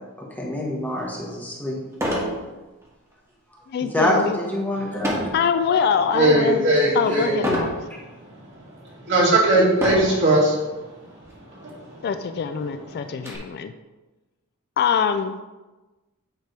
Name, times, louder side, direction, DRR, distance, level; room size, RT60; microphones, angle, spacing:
voice 1, 0.2-1.8 3.9-5.2 7.0-7.2, left 1 dB, 10° left, -3 dB, 1.3 m, -25 dB
sound 1, 1.0-1.1 1.9-2.4 2.8-3.1 5.0-5.4 6.0-6.4 7.4-7.8 8.5-8.6 9.7-10.2 11.2-11.4 11.7-11.8 12.2-13.4, equal, 15° right, 1.5 m, -27 dB
voice 2, 3.7-4.4 5.3-6.7 6.9-7.7 12.0-13.7 14.8-15.4, left 6 dB, 45° left, 10 dB, 0.3 m, -23 dB
voice 3, 6.1-7.5 9.1-10.6 11.6-12.0, right 1 dB, 55° right, -5 dB, 2.2 m, -19 dB
9.0 x 3.4 x 4.6 m, 1.2 s
head